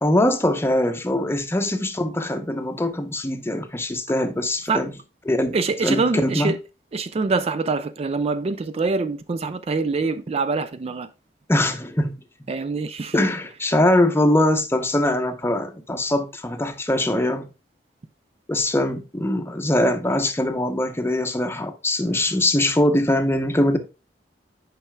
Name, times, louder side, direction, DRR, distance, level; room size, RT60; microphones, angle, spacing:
voice 1, 0.0-4.9 5.3-5.6 5.8-6.5 11.5-12.5 13.1-17.5 18.5-23.8, left 1 dB, 15° left, 0.7 m, -22 dB
voice 2, 5.5-6.6 6.9-11.1 12.5-13.2, right 4 dB, 35° right, 0.4 m, -24 dB
9.0 x 5.5 x 2.2 m
head